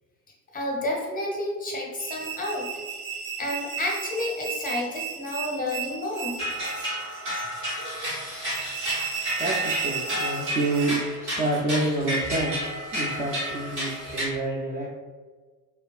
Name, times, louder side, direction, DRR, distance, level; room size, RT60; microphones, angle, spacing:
voice 1, 0.5-2.7 3.4-6.4, left 1 dB, 20° left, -2 dB, 0.7 m, -30 dB
sound 1, 2.0-11.1, right 7 dB, 65° right, 0.7 m, -35 dB
sound 2, 6.4-14.3, equal, 85° right, 1.3 m, -31 dB
voice 2, 9.4-12.6 12.9-14.9, right 2 dB, 25° right, -4 dB, 0.3 m, -28 dB
3.2 x 2.3 x 2.3 m, 1.4 s
figure-of-eight pair, 65°, 46 cm